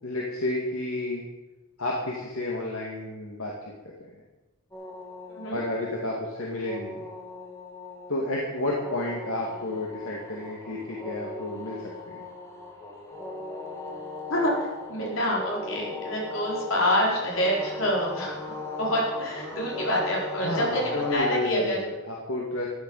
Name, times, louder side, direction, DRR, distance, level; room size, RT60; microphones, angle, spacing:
voice 1, 0.0-1.3 1.8-3.5 4.1-4.2 5.5-7.0 8.1-12.2 20.4-22.7, left 2 dB, 85° left, -2 dB, 2.2 m, -31 dB
sound 1, 4.7-21.1, left 2 dB, 15° left, 2.4 m, -38 dB
voice 2, 5.3-5.6 14.3-21.8, equal, 70° left, -3 dB, 4.6 m, -27 dB
14.0 x 9.5 x 5.6 m, 1.1 s
head